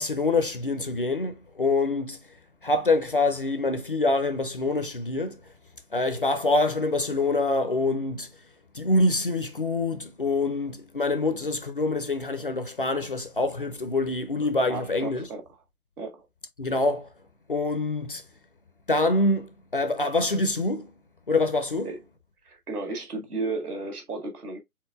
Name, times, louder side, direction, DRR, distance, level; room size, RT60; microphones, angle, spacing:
voice 1, 0.0-2.2 2.6-5.4 5.9-8.3 8.7-15.3 16.6-17.1 17.5-18.2 18.9-20.9 21.3-21.9, left 2 dB, 40° left, 0.5 m, -25 dB
voice 2, 14.7-15.5 16.0-16.3 21.8-22.0 22.4-24.6, right 3 dB, 75° right, 1.9 m, -34 dB
4.6 x 3.7 x 2.3 m
figure-of-eight pair, 150°, 45 cm